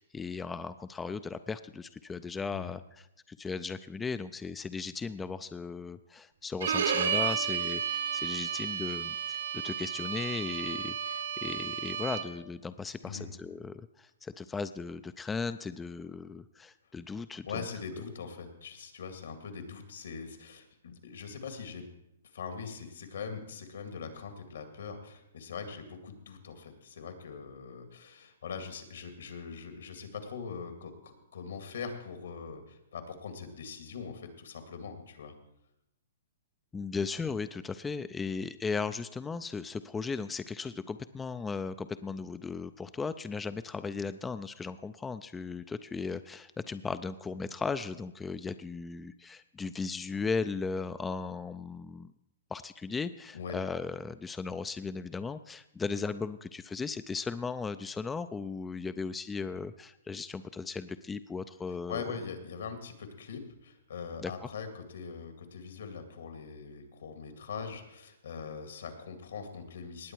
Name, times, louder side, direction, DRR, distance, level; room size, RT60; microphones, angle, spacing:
voice 1, 0.0-17.6 36.7-52.1 52.5-62.0 64.2-64.3, left 4 dB, 10° left, 12 dB, 0.3 m, -37 dB
Bowed string instrument, 6.6-12.4, right 7 dB, 80° right, 1.6 m, -32 dB
voice 2, 13.0-13.3 17.4-21.9 22.3-35.3 53.3-53.6 61.9-70.1, left 5 dB, 75° left, 6 dB, 2.2 m, -42 dB
19.0 x 8.0 x 4.6 m, 0.87 s
hypercardioid pair, 145°, 0 cm